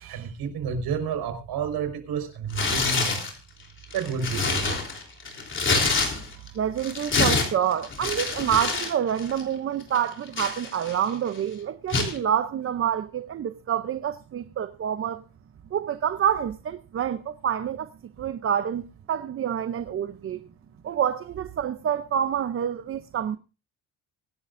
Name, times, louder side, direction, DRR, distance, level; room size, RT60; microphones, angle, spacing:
voice 1, 0.0-3.2 3.9-4.8, right 6 dB, 65° right, 4.8 m, -30 dB
Tearing, 2.5-3.3 3.8-6.5 6.8-8.9 9.2-9.4 9.9-11.1 11.9-12.2, left 4 dB, 30° left, 3.4 m, -26 dB
voice 2, 6.5-15.2 15.7-17.9 18.2-20.4 20.8-23.4, right 9 dB, 35° right, 0.6 m, -27 dB
24.0 x 11.0 x 2.6 m
cardioid pair, 145°, 40 cm